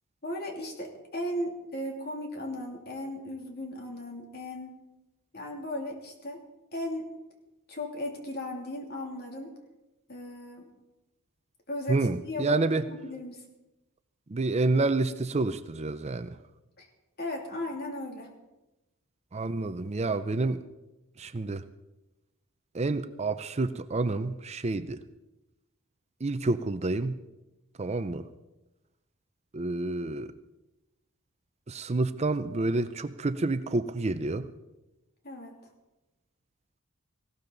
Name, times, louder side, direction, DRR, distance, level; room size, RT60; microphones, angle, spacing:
voice 1, 0.2-4.8 5.3-6.4 6.7-7.1 7.7-9.5 10.1-10.7 11.7-13.4 16.8-16.9 17.2-18.3 35.2-35.6, left 1 dB, 50° left, 1 dB, 2.9 m, -36 dB
voice 2, 11.9-12.8 14.3-16.4 19.3-20.6 21.2-21.6 22.7-25.0 26.2-27.1 27.8-28.2 29.5-30.3 31.7-34.5, right 3 dB, 30° right, 11 dB, 0.6 m, -28 dB
18.5 x 17.0 x 4.0 m, 0.99 s
head